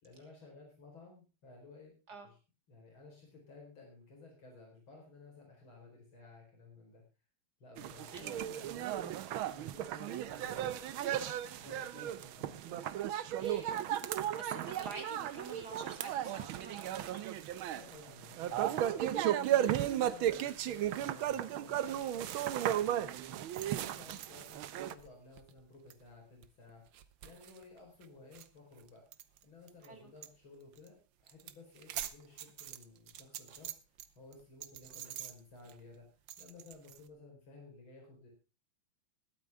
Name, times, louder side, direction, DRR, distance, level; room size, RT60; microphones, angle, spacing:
voice 1, 0.0-1.9 2.2-2.4 2.7-7.0 7.6-9.2 9.5-10.7 11.4-12.9 17.7-26.8 27.2-29.0 29.4-31.0 31.2-33.8 34.2-36.1 36.4-38.3, left 3 dB, 80° left, 0 dB, 5.4 m, -55 dB
sound 1, 7.8-24.9, right 11 dB, 90° right, 1.7 m, -35 dB
voice 2, 13.4-13.9 14.2-17.2 29.8-30.1, right 3 dB, 50° right, 5 dB, 3.3 m, -48 dB
sound 2, 22.1-29.9 30.2-30.4 30.6-30.9 31.2-34.1 34.3-37.1, right 11 dB, 70° right, 1.6 m, -48 dB
21.0 x 9.0 x 3.6 m, 0.31 s
omnidirectional pair, 2.2 m